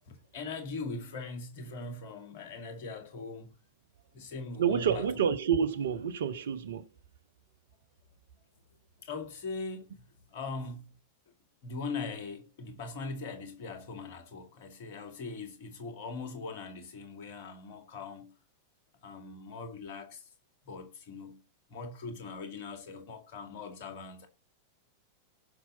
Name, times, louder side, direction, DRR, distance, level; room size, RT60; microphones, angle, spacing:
voice 1, 0.1-3.6 4.1-5.1 9.0-10.0 10.3-10.9 11.6-18.3 19.0-20.2 20.6-21.4 21.7-24.3, left 4 dB, 50° left, 2.3 m, -41 dB
voice 2, 4.6-6.8, right 7 dB, 60° right, 1.0 m, -28 dB
16.0 x 6.1 x 4.2 m
figure-of-eight pair, 90°, 0 cm